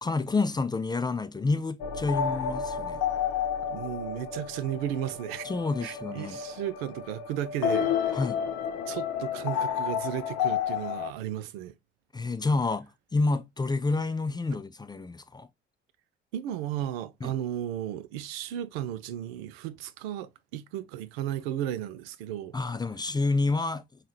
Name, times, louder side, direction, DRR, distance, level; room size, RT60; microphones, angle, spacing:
voice 1, 0.0-3.0 5.4-6.4 8.1-8.4 12.1-12.9 13.1-15.5 17.2-17.3 22.5-23.8, left 3 dB, 15° left, 0.5 m, -28 dB
sound 1, 1.8-11.1, left 8 dB, 60° left, 0.8 m, -31 dB
voice 2, 3.6-5.5 5.8-8.2 8.9-11.7 16.3-22.6, right 11 dB, 70° right, 0.5 m, -34 dB
5.4 x 2.4 x 3.0 m
figure-of-eight pair, 50°, 31 cm